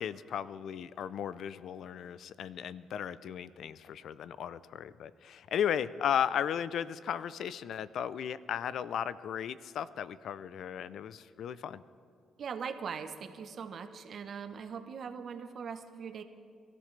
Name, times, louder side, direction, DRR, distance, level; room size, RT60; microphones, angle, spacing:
voice 1, 0.0-11.8, left 9 dB, 70° left, 16 dB, 0.5 m, -35 dB
voice 2, 12.4-16.2, right 6 dB, 55° right, 8 dB, 1.0 m, -41 dB
23.5 x 13.5 x 3.3 m, 2.3 s
cardioid pair, 90°, 0 cm